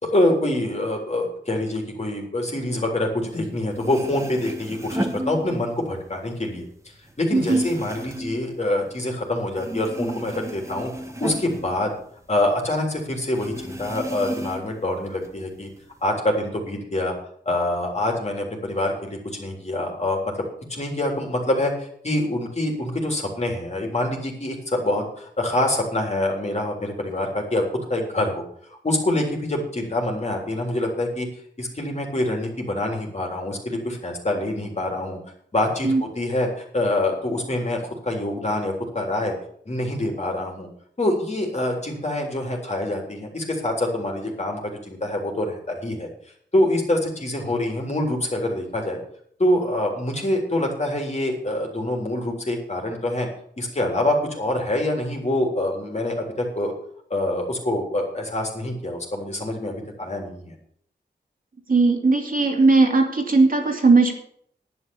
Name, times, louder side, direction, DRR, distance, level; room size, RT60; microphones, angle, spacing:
voice 1, 0.0-6.7 7.2-10.9 11.2-11.9 12.3-15.7 16.0-17.2 17.5-20.3 20.7-28.4 28.8-31.3 31.6-35.2 35.5-39.3 39.7-40.7 41.0-46.1 46.5-49.0 49.4-53.3 53.6-56.7 57.1-60.6, left 1 dB, 40° left, 1 dB, 3.6 m, -25 dB
sound 1, 3.5-3.6 3.7-6.0 6.3-9.2 9.5-12.5 12.8-12.9 13.3-14.8 15.2-16.0, right 1 dB, 15° right, 1.8 m, -33 dB
voice 2, 7.3-7.6 35.8-36.0 61.7-64.2, right 3 dB, 50° right, 2 dB, 2.6 m, -18 dB
11.0 x 9.1 x 7.1 m, 0.63 s
wide cardioid pair, 105°, 18 cm